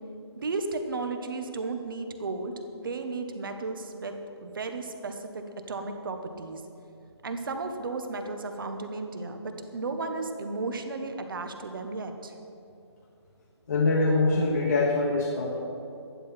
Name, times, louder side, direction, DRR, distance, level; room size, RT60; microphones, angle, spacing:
voice 1, 0.3-6.6 7.2-12.3, right 3 dB, 50° right, 6 dB, 1.4 m, -34 dB
voice 2, 13.7-15.5, left 3 dB, 40° left, -2 dB, 1.4 m, -24 dB
12.0 x 11.0 x 6.0 m, 2.6 s
hypercardioid pair, 165°, 15 cm